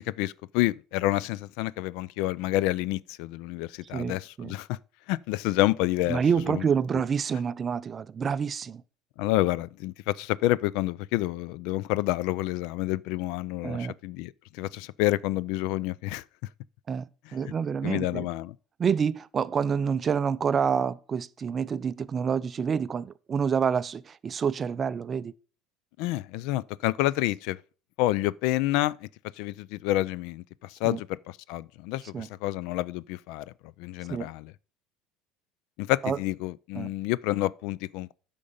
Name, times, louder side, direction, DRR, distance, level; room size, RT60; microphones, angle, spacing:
voice 1, 0.1-4.8 5.1-6.2 6.5-6.6 9.2-16.2 17.3-17.5 17.8-18.6 26.0-27.6 28.0-29.1 29.4-33.4 33.8-34.5 35.8-38.1, left 16 dB, 75° left, 0.3 m, -29 dB
voice 2, 3.9-4.5 6.1-8.8 13.6-13.9 16.9-18.3 18.8-25.3 30.8-31.0 32.1-32.3 34.1-34.3 36.0-36.2 36.8-36.9, right 6 dB, 30° right, 0.4 m, -28 dB
8.6 x 5.3 x 5.3 m
cardioid pair, 135°, 0 cm